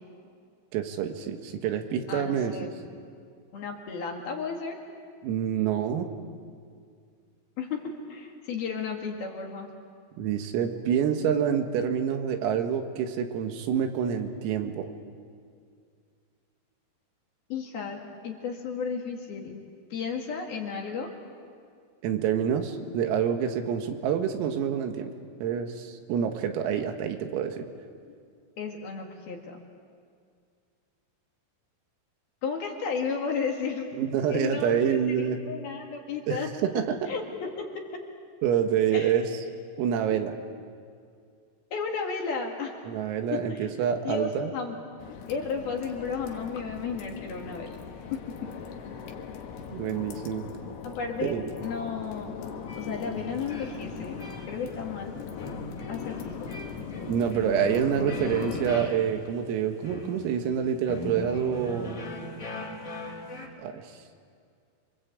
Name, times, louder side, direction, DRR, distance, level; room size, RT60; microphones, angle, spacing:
voice 1, 0.7-2.7 5.2-6.1 10.2-14.9 22.0-25.1 25.4-27.7 34.0-35.4 36.3-37.0 38.4-39.3 39.8-40.3 42.9-44.5 49.7-50.5 51.2-51.5 57.1-62.0 63.6-63.9, right 8 dB, 85° right, 5 dB, 4.4 m, -27 dB
voice 2, 2.1-2.7 3.5-4.8 7.6-9.7 17.5-19.6 19.9-21.1 28.1-28.2 28.6-29.6 32.4-33.9 34.3-35.1 35.4-36.5 37.1-38.0 38.9-39.1 40.1-40.2 41.7-42.7 43.3-43.7 44.0-44.8 45.3-47.8 48.1-48.5 50.8-51.3 51.6-52.3 52.8-55.5 55.9-56.5, left 5 dB, 55° left, 1 dB, 3.3 m, -33 dB
sound 1, 45.0-58.8, left 6 dB, 75° left, 4.3 m, -39 dB
sound 2, 52.7-63.5, left 2 dB, 25° left, 2.9 m, -41 dB
28.5 x 24.5 x 8.4 m, 2.2 s
omnidirectional pair, 6.0 m